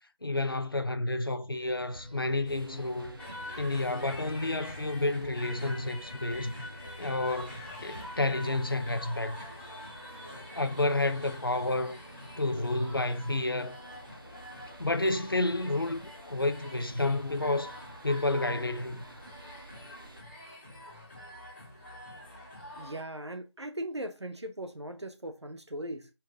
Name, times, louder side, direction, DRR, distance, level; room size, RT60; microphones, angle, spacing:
voice 1, 0.2-3.2 3.6-6.5 7.0-9.4 10.5-12.0 12.4-13.8 14.8-17.7 18.0-19.0, left 2 dB, 50° left, 0.9 m, -30 dB
sound 1, 1.5-8.4, left 1 dB, 15° right, 1.2 m, -51 dB
sound 2, 2.4-20.2, right 2 dB, 50° right, 1.1 m, -52 dB
sound 3, 3.2-23.0, left 1 dB, 25° left, 2.8 m, -46 dB
voice 2, 22.7-26.1, right 1 dB, 70° right, 1.0 m, -39 dB
6.2 x 4.5 x 3.7 m
figure-of-eight pair, 170°, 15 cm